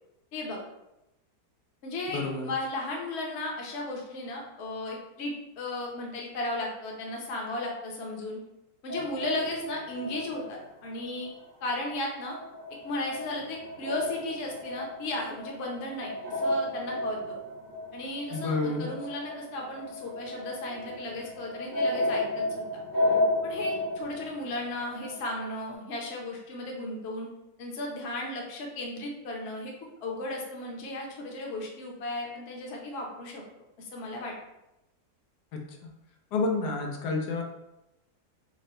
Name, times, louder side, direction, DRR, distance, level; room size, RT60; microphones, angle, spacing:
voice 1, 0.3-0.6 1.8-8.4 8.8-11.3 11.6-12.4 12.8-17.4 17.9-22.7 23.4-27.3 27.6-29.7 30.0-33.4 33.9-34.3, left 2 dB, 50° left, -1 dB, 0.9 m, -35 dB
voice 2, 2.1-2.5 18.3-18.9 35.5-35.6 36.3-37.4, left 3 dB, 90° left, 2 dB, 1.2 m, -29 dB
sound 1, 8.9-11.5 11.7-25.6, left 1 dB, 20° right, 0.7 m, -33 dB
3.7 x 2.1 x 4.1 m, 0.89 s
omnidirectional pair, 1.7 m